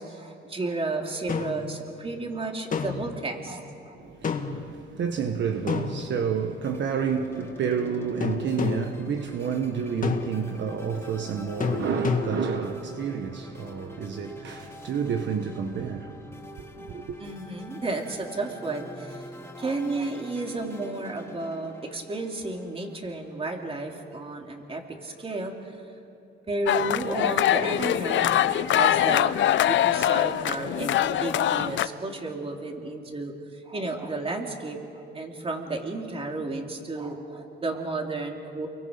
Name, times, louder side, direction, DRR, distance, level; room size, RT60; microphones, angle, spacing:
voice 1, 0.0-4.0 5.0-5.1 17.2-19.3 19.6-25.8 26.5-38.7, right 2 dB, 30° right, 3.2 m, -33 dB
sound 1, 1.3-1.7 2.7-3.2 4.2-4.7 5.7-6.5 8.2-9.0 10.0-10.6 11.6-12.6, left 5 dB, 40° left, 1.8 m, -29 dB
voice 2, 3.9-16.2 16.8-17.2, right 7 dB, 65° right, 1.4 m, -30 dB
sound 2, 6.6-24.0, left 1 dB, 10° left, 3.0 m, -45 dB
sound 3, 26.7-31.9, left 11 dB, 70° left, 0.7 m, -23 dB
29.5 x 23.0 x 5.3 m
cardioid pair, 90°, 20 cm